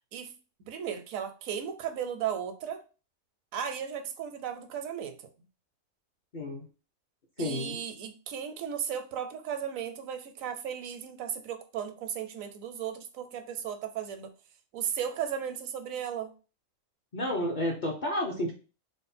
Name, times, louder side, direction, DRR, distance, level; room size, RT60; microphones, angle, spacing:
voice 1, 0.7-2.8 3.5-5.2 7.4-14.3 14.7-16.3, right 8 dB, 80° right, 7 dB, 1.0 m, -35 dB
voice 2, 6.3-6.7 7.4-7.8 17.1-18.5, left 1 dB, 45° left, 0 dB, 0.6 m, -31 dB
3.4 x 2.1 x 4.1 m, 0.34 s
omnidirectional pair, 1.4 m